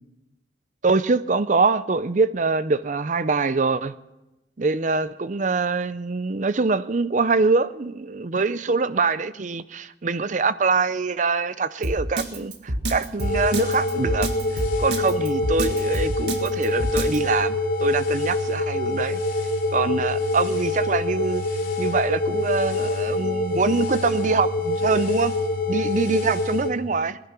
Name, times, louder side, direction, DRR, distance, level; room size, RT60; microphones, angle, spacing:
voice 1, 0.8-3.9 4.6-19.2 19.7-21.4 21.8-25.3 25.7-27.2, right 4 dB, 45° right, 0.6 m, -24 dB
Drum kit, 11.8-17.2, right 1 dB, 75° right, 1.9 m, -27 dB
sound 1, 13.2-26.7, left 2 dB, 50° left, 3.5 m, -25 dB
19.0 x 10.5 x 6.0 m
head